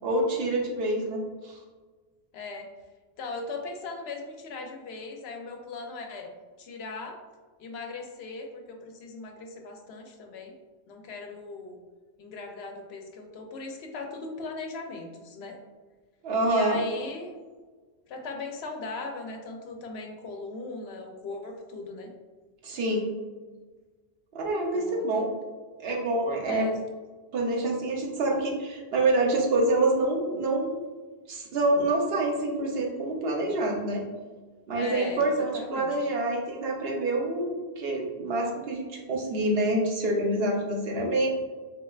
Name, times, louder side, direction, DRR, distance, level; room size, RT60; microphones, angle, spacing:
voice 1, 0.0-1.5 16.2-16.8 22.6-23.1 24.3-25.3 25.8-26.7 27.3-30.8 31.3-34.0 34.7-41.3, right 2 dB, 70° right, 0 dB, 1.0 m, -27 dB
voice 2, 2.3-2.7 3.2-6.3 6.6-7.2 7.6-10.5 10.9-11.8 12.2-15.6 16.4-17.3 18.1-22.1 24.7-25.3 26.4-26.8 34.7-35.9, left 3 dB, 80° left, 2 dB, 0.8 m, -38 dB
3.7 x 3.2 x 2.3 m, 1.4 s
omnidirectional pair, 1.1 m